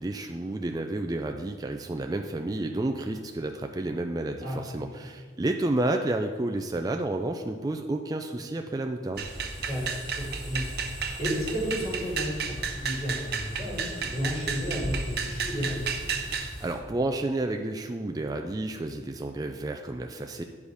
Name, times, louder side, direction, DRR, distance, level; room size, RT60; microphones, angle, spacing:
voice 1, 0.0-9.3 16.6-20.4, right 2 dB, 20° right, 4 dB, 0.3 m, -30 dB
voice 2, 4.4-4.8 9.7-9.8 10.2-10.8 11.2-15.9, equal, 30° left, -6 dB, 2.8 m, -32 dB
sound 1, 9.1-16.7, equal, 15° left, 2.6 m, -39 dB
sound 2, 9.2-16.5, right 6 dB, 55° right, 0.6 m, -33 dB
9.5 x 5.2 x 5.0 m, 1.5 s
head